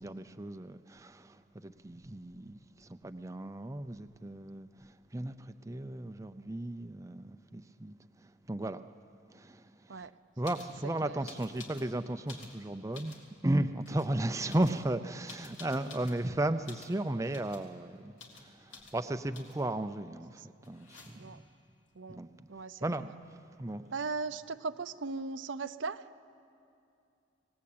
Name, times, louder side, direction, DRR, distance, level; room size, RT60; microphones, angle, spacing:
voice 1, 0.0-8.8 9.3-10.1 10.4-21.4 22.1-22.5 22.8-23.8, right 1 dB, 15° right, 9 dB, 0.5 m, -35 dB
sound 1, 10.4-10.7 11.2-11.9 12.2-13.3 13.8-14.1 14.5-16.2 16.6-17.0 17.3-17.7 18.2-18.5 18.7-19.0 19.3-19.7 20.6-21.4 23.2-23.3 23.5-24.1, left 4 dB, 80° left, 3.5 m, -51 dB
voice 2, 22.5-22.8 23.9-26.2, right 4 dB, 80° right, 11 dB, 0.7 m, -38 dB
27.0 x 18.0 x 8.7 m, 2.6 s
head